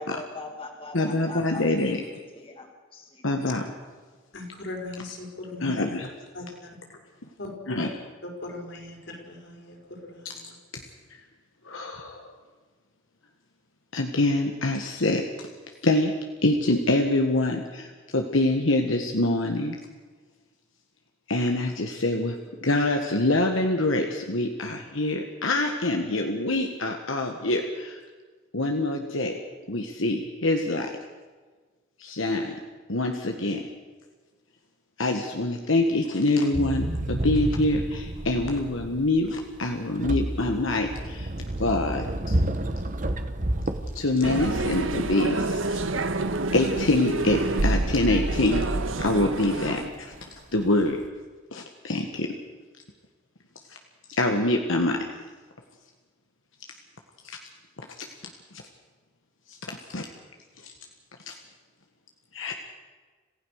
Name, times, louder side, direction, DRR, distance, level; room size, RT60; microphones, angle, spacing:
voice 1, 0.0-3.2, left 2 dB, 25° left, 2 dB, 2.2 m, -41 dB
voice 2, 0.9-2.0 3.2-3.6 5.6-6.1 7.7-7.9 11.6-12.3 13.9-15.5 15.8-16.1 16.4-19.8 21.3-22.4 22.6-28.0 28.5-29.4 29.7-30.9 32.0-32.6 32.9-33.6 35.0-41.3 41.6-42.4 43.9-45.8 46.5-48.7 49.0-50.1 50.5-51.0 51.5-52.3 54.1-55.1 57.2-57.4 57.8-58.1 58.5-58.6 59.5-60.0 60.6-60.7 61.3-61.4 62.3-62.5, left 2 dB, 75° left, 3 dB, 1.7 m, -25 dB
voice 3, 4.3-5.8 6.3-6.4 7.4-7.9 8.2-10.5, left 2 dB, 60° left, 2 dB, 5.0 m, -39 dB
sound 1, 36.5-51.1, right 1 dB, 40° right, 1.3 m, -31 dB
sound 2, 44.2-49.9, right 2 dB, 75° right, 1.4 m, -28 dB
27.0 x 16.0 x 6.6 m, 1.4 s
head